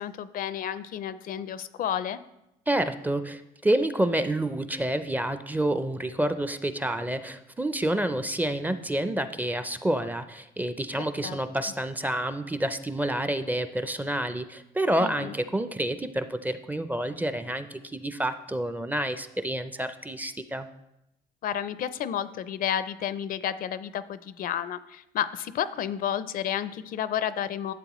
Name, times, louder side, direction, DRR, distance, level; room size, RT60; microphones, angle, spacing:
voice 1, 0.0-2.2 11.2-11.4 15.0-15.3 21.4-27.7, left 9 dB, 55° left, 14 dB, 0.5 m, -31 dB
voice 2, 2.7-20.7, right 1 dB, 10° right, 11 dB, 0.5 m, -28 dB
12.0 x 7.4 x 3.0 m, 0.88 s
cardioid pair, 110°, 17 cm